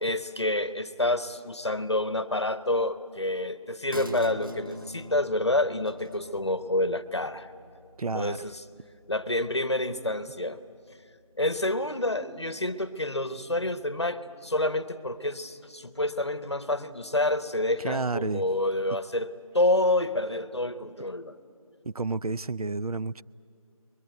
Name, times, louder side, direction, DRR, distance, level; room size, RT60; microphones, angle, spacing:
voice 1, 0.0-7.5 8.1-8.6 9.1-10.6 11.4-19.3 19.5-21.4, left 1 dB, 45° left, 0.9 m, -28 dB
sound 1, 3.9-10.9 11.3-11.4, left 1 dB, 35° right, 0.9 m, -43 dB
voice 2, 8.0-8.4 17.8-18.4 21.8-23.2, right 3 dB, 75° right, 0.5 m, -30 dB
21.5 x 21.5 x 9.2 m
figure-of-eight pair, 180°, 19 cm